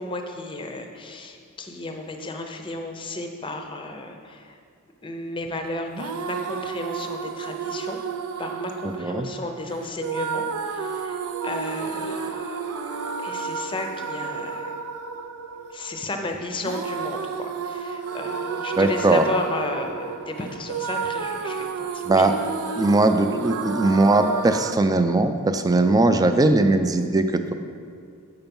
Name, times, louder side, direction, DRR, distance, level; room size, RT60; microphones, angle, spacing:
voice 1, 0.0-4.6 5.0-8.0 8.4-11.2 11.4-14.7 15.7-22.3, left 2 dB, 25° left, 4 dB, 0.6 m, -33 dB
sound 1, 5.9-24.7, right 5 dB, 85° right, 0.5 m, -31 dB
voice 2, 9.0-9.3 18.8-19.3 22.1-22.3 22.8-27.5, right 2 dB, 15° right, 8 dB, 0.4 m, -19 dB
7.9 x 5.8 x 5.3 m, 2.2 s
head